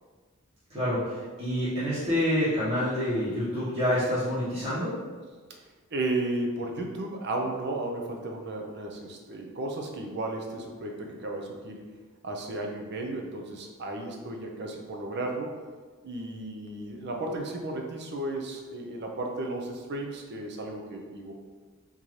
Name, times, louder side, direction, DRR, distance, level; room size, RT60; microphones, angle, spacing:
voice 1, 0.7-4.9, equal, 30° right, -13 dB, 1.1 m, -27 dB
voice 2, 5.9-11.9 12.2-15.6 16.0-21.3, right 2 dB, 55° right, 1 dB, 0.5 m, -34 dB
3.7 x 2.7 x 3.1 m, 1.4 s
head